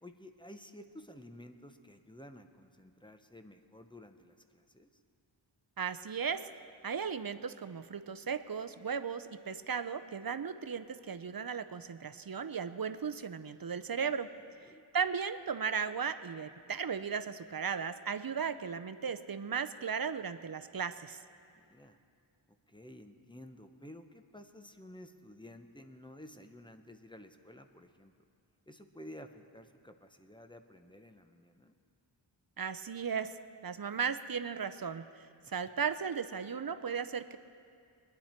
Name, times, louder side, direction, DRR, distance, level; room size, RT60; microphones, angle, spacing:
voice 1, 0.0-4.9 14.6-14.8 21.5-22.0 22.7-28.1 28.7-31.7 35.4-35.5, left 1 dB, 10° left, 6 dB, 0.8 m, -52 dB
voice 2, 5.8-6.5 6.8-14.3 14.9-21.2 32.6-33.3 33.6-35.0 35.5-37.4, right 6 dB, 50° right, 11 dB, 0.6 m, -36 dB
21.5 x 10.5 x 4.4 m, 2.3 s
wide cardioid pair, 50°, 47 cm